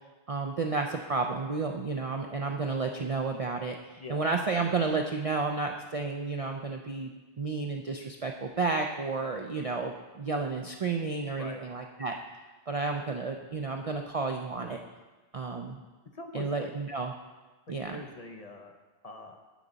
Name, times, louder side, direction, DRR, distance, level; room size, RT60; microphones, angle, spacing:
voice 1, 0.3-7.1 7.4-12.2 12.7-14.8 15.3-15.8 16.3-17.1 17.7-18.0, right 4 dB, 50° right, 3 dB, 0.4 m, -31 dB
voice 2, 16.1-16.7 17.7-18.7 19.0-19.4, left 2 dB, 40° left, 3 dB, 0.7 m, -43 dB
9.1 x 8.3 x 4.0 m, 1.2 s
omnidirectional pair, 1.2 m